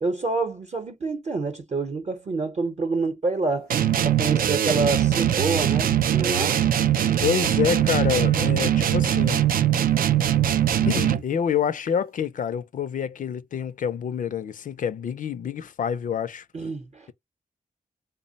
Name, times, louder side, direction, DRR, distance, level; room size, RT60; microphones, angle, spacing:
voice 1, 0.0-3.7 4.0-6.6 16.5-17.1, right 3 dB, 45° right, 0.7 m, -27 dB
sound 1, 3.7-11.4, right 10 dB, 80° right, 0.4 m, -21 dB
voice 2, 7.2-9.4 10.9-16.5, left 7 dB, 65° left, 0.4 m, -27 dB
3.6 x 2.0 x 3.9 m
wide cardioid pair, 100°, 14 cm